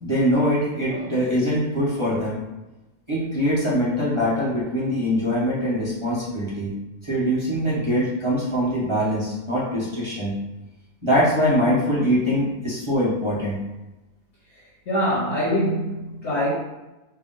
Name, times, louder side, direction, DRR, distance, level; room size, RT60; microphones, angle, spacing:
voice 1, 0.0-2.4 3.1-6.7 7.0-10.3 11.0-13.6, equal, 20° right, -8 dB, 1.1 m, -23 dB
voice 2, 14.9-16.5, equal, 55° left, -6 dB, 1.0 m, -23 dB
4.6 x 2.2 x 3.7 m, 1.0 s
omnidirectional pair, 1.7 m